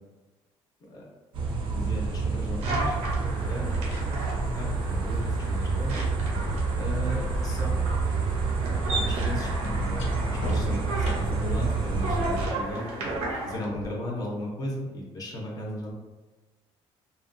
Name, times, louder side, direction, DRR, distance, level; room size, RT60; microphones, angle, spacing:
sound 1, 1.3-12.5, right 4 dB, 50° right, 0.5 m, -28 dB
voice 1, 1.7-4.2 4.5-6.0 6.7-7.7 8.9-12.9 13.4-15.9, left 1 dB, 35° left, -2 dB, 0.5 m, -36 dB
sound 2, 2.6-13.6, right 2 dB, 90° right, 0.7 m, -35 dB
sound 3, 3.7-7.6 7.8-11.6 13.6-13.8, left 1 dB, 90° left, 0.6 m, -40 dB
2.7 x 2.1 x 2.5 m, 1.2 s
cardioid pair, 150°, 11 cm